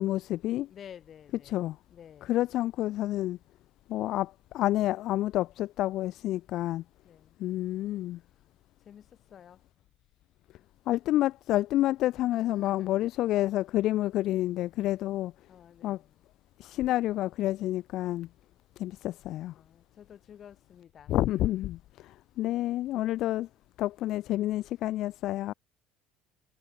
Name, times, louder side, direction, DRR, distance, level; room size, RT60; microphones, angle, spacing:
voice 1, 0.0-0.7 1.5-1.8 2.2-3.4 3.9-6.8 7.4-8.2 10.9-15.3 15.8-16.0 16.6-18.3 18.8-19.5 21.1-23.5 23.8-25.5, left 15 dB, 50° left, 0.4 m, -29 dB
voice 2, 0.7-2.4 7.0-7.4 8.1-8.3 8.8-9.6 12.3-13.1 15.5-16.2 19.5-21.2, left 9 dB, 30° left, 6.6 m, -52 dB
cardioid pair, 160°, 0 cm